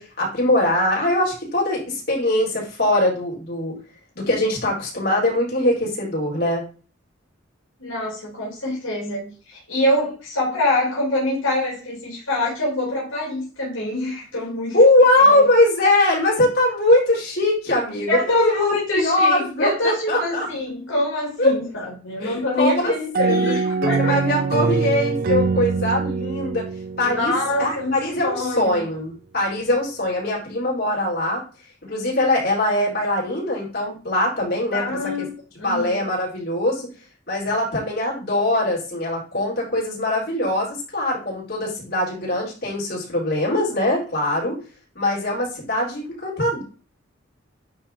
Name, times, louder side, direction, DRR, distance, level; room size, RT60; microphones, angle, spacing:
voice 1, 0.0-3.8 4.2-6.6 14.7-20.5 21.4-21.5 22.2-22.9 23.3-26.6 27.0-31.4 31.9-35.1 35.6-36.9 37.3-44.5 44.9-46.6, left 1 dB, 50° left, -4 dB, 4.1 m, -21 dB
voice 2, 7.8-14.8 15.3-15.5 18.1-24.2 27.0-27.9 28.2-28.8 34.7-35.3 35.6-36.0, left 1 dB, 80° left, -3 dB, 2.7 m, -24 dB
sound 1, 23.1-27.8, right 4 dB, 45° right, 0.3 m, -23 dB
9.6 x 3.7 x 4.3 m, 0.36 s
head